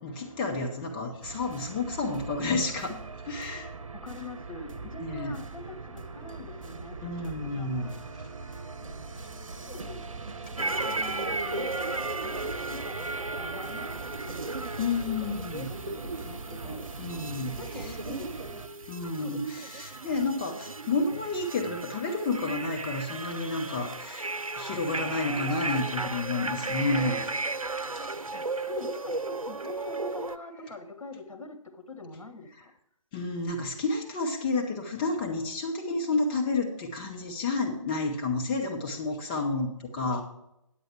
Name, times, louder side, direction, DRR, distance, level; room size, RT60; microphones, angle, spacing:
voice 1, 0.0-3.0 3.2-3.7 5.0-5.3 7.0-7.9 9.1-9.2 14.8-15.7 17.0-18.0 18.9-27.3 27.9-28.2 33.1-40.2, left 3 dB, 20° left, 0.8 m, -30 dB
sound 1, 1.2-18.7, right 4 dB, 70° right, 0.9 m, -42 dB
voice 2, 3.9-7.9 8.2-8.4 8.9-9.0 9.6-10.0 10.6-14.5 15.7-16.9 17.6-18.7 19.2-19.7 28.3-32.7, left 2 dB, 75° left, 1.4 m, -43 dB
sound 2, 4.7-16.7, left 2 dB, 55° left, 2.5 m, -51 dB
short wave radio noise, 10.6-30.4, right 3 dB, 90° right, 0.6 m, -35 dB
10.0 x 7.8 x 4.5 m
figure-of-eight pair, 145°, 17 cm